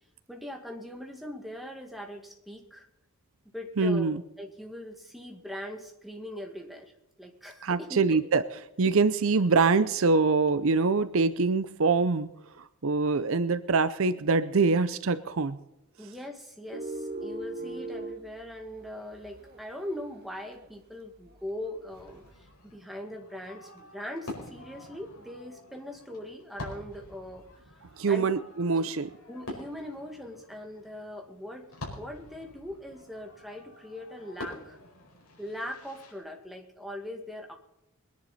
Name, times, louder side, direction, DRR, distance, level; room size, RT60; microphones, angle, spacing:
voice 1, 0.3-2.9 3.5-6.9 7.2-8.2 16.0-22.2 22.7-27.5 28.1-28.3 28.8-28.9 29.3-34.8 35.4-37.5, left 1 dB, ahead, 2 dB, 1.9 m, -41 dB
voice 2, 3.8-4.2 7.6-8.4 8.8-12.3 12.6-15.6 28.0-29.1, right 4 dB, 65° right, 14 dB, 0.6 m, -24 dB
sound 1, 16.7-20.1 20.5-20.7 21.3-22.3, right 2 dB, 45° right, 2.1 m, -40 dB
Fireworks, 21.9-36.1, left 1 dB, 80° left, 5.0 m, -47 dB
22.0 x 10.5 x 4.2 m, 0.88 s
head